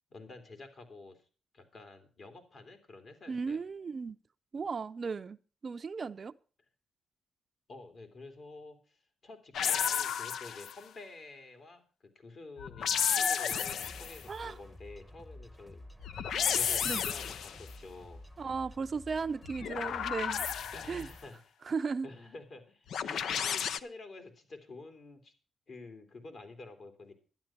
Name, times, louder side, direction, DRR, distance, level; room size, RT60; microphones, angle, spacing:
voice 1, 0.1-1.2 1.5-3.6 7.7-15.8 16.5-18.2 20.7-21.4 22.0-25.3 25.7-27.1, left 3 dB, 55° left, 3.0 m, -49 dB
voice 2, 3.3-4.2 4.5-5.4 5.6-6.3 14.3-14.6 16.8-17.0 18.4-20.5 20.9-21.1 21.6-22.1, right 5 dB, 45° right, 0.5 m, -35 dB
sound 1, 9.5-10.8 12.6-14.2 16.0-17.6 19.4-21.1 22.9-23.8, left 8 dB, 75° left, 0.6 m, -32 dB
sound 2, 13.8-21.3, left 1 dB, ahead, 0.9 m, -51 dB
12.0 x 10.5 x 5.8 m
cardioid pair, 85°, 0 cm